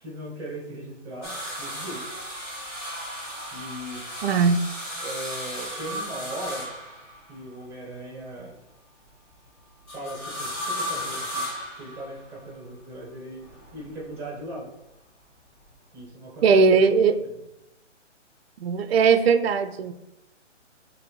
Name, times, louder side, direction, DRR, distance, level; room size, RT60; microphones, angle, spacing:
voice 1, 0.0-1.3 1.6-2.0 3.5-4.0 5.0-6.7 7.3-8.6 9.9-11.4 11.8-13.5 13.7-14.7 15.9-17.4, right 1 dB, 10° right, -2 dB, 1.2 m, -38 dB
sound 1, 1.2-7.5 9.9-12.4 13.4-14.2 15.6-15.7, equal, 15° left, 0.6 m, -35 dB
voice 2, 4.2-4.6 16.4-17.2 18.6-19.9, right 5 dB, 55° right, 9 dB, 0.5 m, -19 dB
4.8 x 3.0 x 3.2 m, 0.91 s
hypercardioid pair, 145°, 37 cm